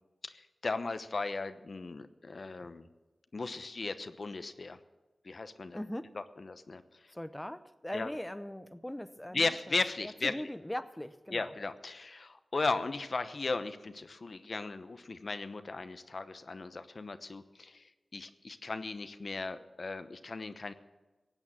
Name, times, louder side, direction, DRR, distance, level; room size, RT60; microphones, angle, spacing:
voice 1, 0.2-2.9 3.3-4.8 5.2-5.8 6.1-6.8 7.9-8.1 9.3-10.4 11.3-20.7, left 3 dB, 60° left, 11 dB, 0.9 m, -36 dB
voice 2, 5.7-6.2 7.1-9.8 10.0-11.5, left 1 dB, 10° left, 11 dB, 0.7 m, -40 dB
16.5 x 8.9 x 7.4 m, 1.2 s
cardioid pair, 55°, 0 cm